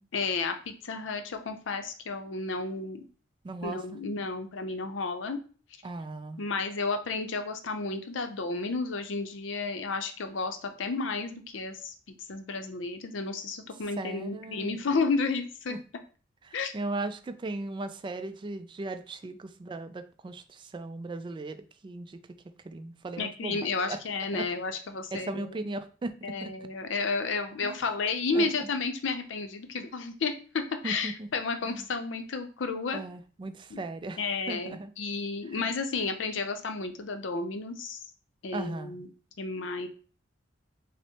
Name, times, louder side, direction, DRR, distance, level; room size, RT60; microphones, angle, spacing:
voice 1, 0.1-3.1 3.6-5.4 6.4-11.9 12.3-15.8 16.5-16.7 23.2-25.6 26.2-33.0 33.7-33.8 34.2-38.0 38.4-39.1 39.4-39.9, left 4 dB, 80° left, 7 dB, 0.6 m, -32 dB
voice 2, 3.4-3.8 5.8-6.4 14.0-14.9 15.7-15.8 16.4-22.2 22.6-24.0 24.3-24.5 25.1-26.1 26.4-26.5 27.6-27.8 28.3-28.7 30.8-31.3 31.6-31.9 32.9-34.2 34.5-34.9 35.5-35.7 38.5-39.0, right 2 dB, 25° right, 9 dB, 0.3 m, -37 dB
6.1 x 2.1 x 2.9 m, 0.39 s
head